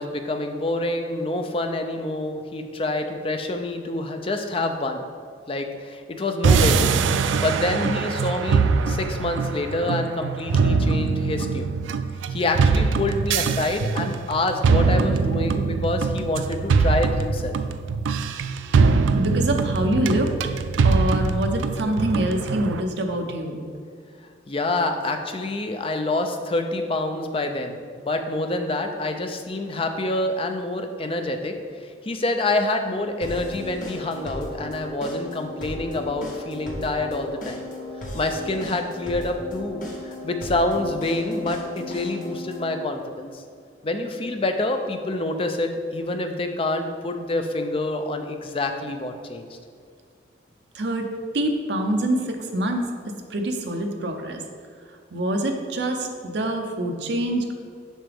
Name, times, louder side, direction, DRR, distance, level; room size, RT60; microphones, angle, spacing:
voice 1, 0.0-5.1 5.5-11.8 12.3-17.6 24.5-37.6 38.1-43.3 43.8-49.5, left 2 dB, 30° left, 5 dB, 0.5 m, -27 dB
sound 1, 6.4-22.8, right 4 dB, 85° right, 0.3 m, -22 dB
voice 2, 19.1-20.3 20.8-23.6 50.7-52.9 53.3-54.4 55.1-57.5, right 1 dB, 65° right, 4 dB, 0.7 m, -25 dB
sound 2, 33.2-42.8, left 1 dB, 45° left, 1.1 m, -36 dB
7.3 x 5.7 x 3.5 m, 2.2 s
head